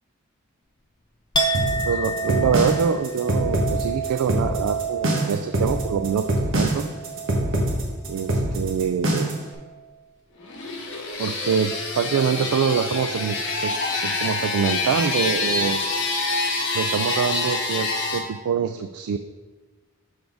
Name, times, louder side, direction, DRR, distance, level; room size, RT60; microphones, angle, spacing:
Chink clink, 1.3-9.0 9.4-10.0, right 3 dB, 20° left, 0.5 m, -30 dB
sound 1, 1.5-9.5, right 1 dB, 60° right, 1.3 m, -24 dB
voice 1, 1.9-6.2 6.5-6.8 8.1-9.3 11.2-13.7 14.0-15.8 16.7-19.2, right 7 dB, 80° right, 8 dB, 0.3 m, -25 dB
sound 2, 10.4-18.2, left 3 dB, 55° left, 1.1 m, -26 dB
6.3 x 6.0 x 3.5 m, 1.3 s
head